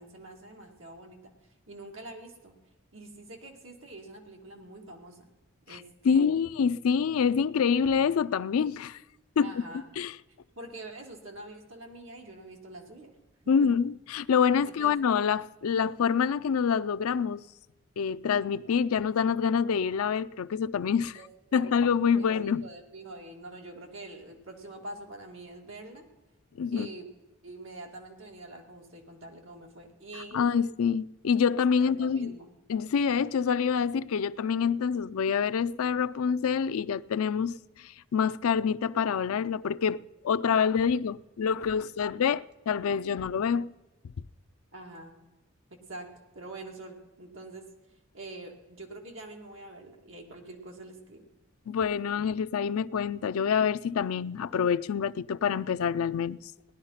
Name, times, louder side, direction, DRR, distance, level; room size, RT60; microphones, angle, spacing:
voice 1, 0.0-1.3 1.7-2.5 2.9-5.3 5.7-6.2 9.4-9.8 10.6-13.1 13.6-13.7 14.6-14.9 21.1-21.3 21.5-21.8 22.0-26.1 26.7-27.1 27.4-30.5 31.8-32.5 44.7-45.2 45.7-46.1 46.3-47.7 48.1-51.3, right 2 dB, 65° right, 2.2 m, -45 dB
voice 2, 5.7-9.0 9.4-9.5 10.0-10.2 13.5-17.4 18.0-21.2 21.5-22.7 26.6-26.9 30.3-32.4 32.7-40.0 40.2-43.7 51.7-56.4, left 6 dB, 85° left, 0.4 m, -26 dB
17.0 x 11.0 x 5.6 m
head